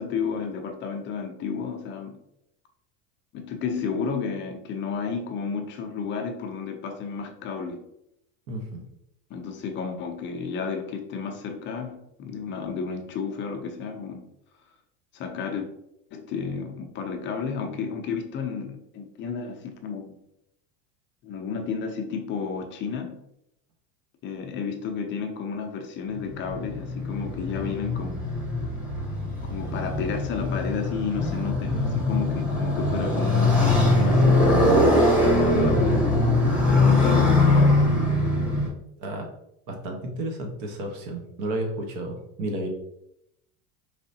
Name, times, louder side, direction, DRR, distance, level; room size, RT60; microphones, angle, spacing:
voice 1, 0.0-2.2 3.3-7.9 9.3-14.2 15.1-15.7 16.1-20.2 21.2-23.2 24.2-28.3 29.4-36.1 36.7-37.8, left 5 dB, 30° left, 4 dB, 0.5 m, -32 dB
voice 2, 8.5-8.8 31.7-32.4 39.0-39.3 39.7-42.7, right 1 dB, 50° right, 3 dB, 1.0 m, -32 dB
Motorcycle, 26.2-38.7, left 2 dB, 5° right, 1.0 m, -22 dB
4.7 x 3.3 x 2.7 m, 0.80 s
supercardioid pair, 150°, 40 cm